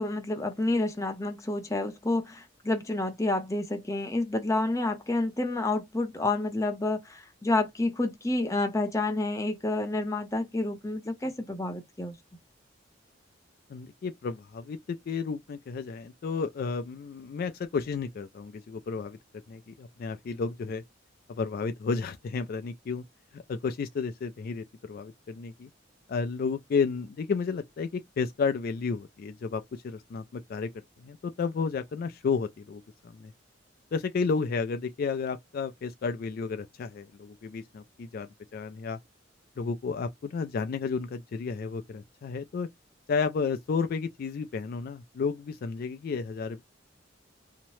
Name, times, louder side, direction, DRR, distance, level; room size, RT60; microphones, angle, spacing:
voice 1, 0.0-12.2, left 2 dB, 15° left, 0.6 m, -29 dB
voice 2, 13.7-19.2 19.5-20.8 21.3-23.0 23.3-25.7 26.1-30.7 31.0-33.3 33.9-39.0 39.6-42.7 43.1-46.6, left 5 dB, 50° left, 0.3 m, -32 dB
2.8 x 2.0 x 3.0 m
head